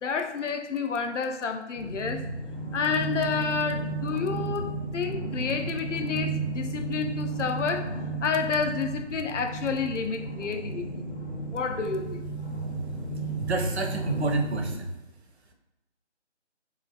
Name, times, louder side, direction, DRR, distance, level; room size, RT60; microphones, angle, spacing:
voice 1, 0.0-2.3 2.7-7.9 8.2-11.0 11.5-12.3, left 5 dB, 85° left, 0.5 m, -30 dB
sound 1, 1.7-14.8, right 3 dB, 60° left, 0.8 m, -33 dB
voice 2, 13.4-14.9, right 2 dB, 65° right, 0.5 m, -29 dB
3.1 x 2.4 x 2.3 m
figure-of-eight pair, 170°, 36 cm